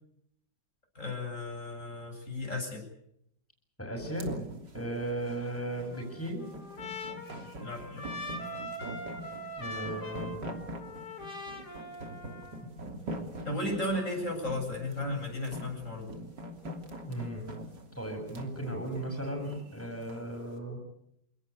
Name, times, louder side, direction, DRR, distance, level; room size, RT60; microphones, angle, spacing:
voice 1, 1.0-2.8 7.6-8.1 13.5-16.1, left 1 dB, 40° left, 0 dB, 8.5 m, -34 dB
voice 2, 3.8-4.3 4.7-6.5 9.6-10.3 17.0-17.5 18.0-20.8, right 1 dB, 5° left, 2 dB, 7.5 m, -36 dB
sound 1, 4.0-20.3, right 1 dB, 70° right, 3.8 m, -43 dB
Trumpet, 5.9-12.7, left 1 dB, 60° left, 4.1 m, -42 dB
28.5 x 18.5 x 8.4 m, 0.75 s
omnidirectional pair, 2.0 m